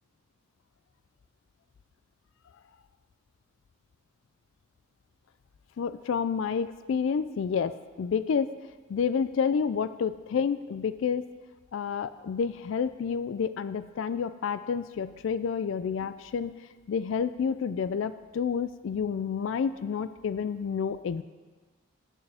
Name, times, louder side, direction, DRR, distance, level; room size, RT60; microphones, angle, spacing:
voice 1, 5.8-8.5 8.9-11.3 11.7-16.5 16.9-21.2, left 6 dB, 65° left, 14 dB, 0.3 m, -29 dB
17.5 x 7.1 x 3.4 m, 1.3 s
head